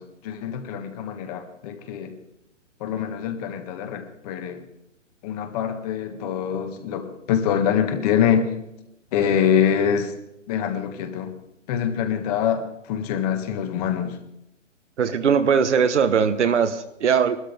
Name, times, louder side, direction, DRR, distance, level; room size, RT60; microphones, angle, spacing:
voice 1, 0.0-2.1 2.8-4.6 5.2-8.5 9.1-10.1 10.5-11.3 11.7-14.2, left 8 dB, 30° left, 7 dB, 1.5 m, -24 dB
voice 2, 15.0-17.4, right 6 dB, 65° right, 9 dB, 1.3 m, -20 dB
21.0 x 13.0 x 3.5 m, 0.83 s
hypercardioid pair, 135°, 38 cm